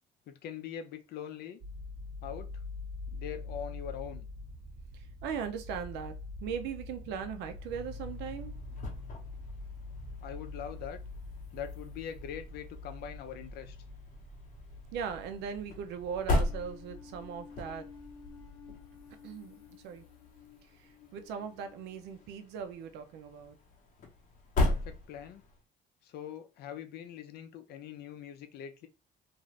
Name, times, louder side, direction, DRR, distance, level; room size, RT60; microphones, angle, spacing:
voice 1, 0.3-1.6 2.2-2.5 3.1-4.3 10.2-11.0 11.5-13.8 24.6-25.4 26.0-28.9, left 8 dB, 70° left, 0.6 m, -42 dB
sound 1, 1.6-19.0, left 3 dB, 30° right, 0.9 m, -45 dB
voice 2, 4.9-8.6 14.9-17.9 19.2-20.0 20.8-23.6, right 7 dB, 85° right, 0.5 m, -39 dB
sound 2, 7.5-25.6, left 2 dB, 50° left, 1.0 m, -38 dB
sound 3, 16.3-22.7, left 6 dB, 25° left, 0.7 m, -54 dB
2.6 x 2.4 x 3.1 m
cardioid pair, 110°, 17 cm